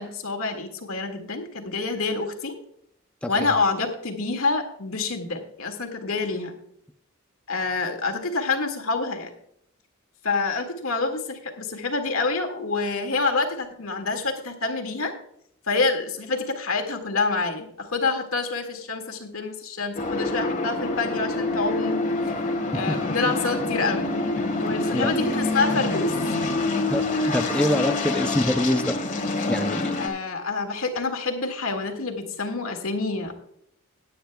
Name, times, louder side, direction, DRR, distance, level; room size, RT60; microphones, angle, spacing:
voice 1, 0.0-2.6 3.3-6.5 7.5-9.3 10.2-15.1 15.7-22.1 22.7-24.1 24.6-26.1 30.0-33.3, left 3 dB, 75° left, 4 dB, 1.9 m, -27 dB
voice 2, 3.2-3.6 22.7-23.1 24.9-25.2 26.9-29.0 29.5-30.0, left 1 dB, 5° left, 6 dB, 0.5 m, -25 dB
sound 1, 20.0-30.1, left 2 dB, 40° left, 1.6 m, -26 dB
18.5 x 9.3 x 2.2 m, 0.70 s
head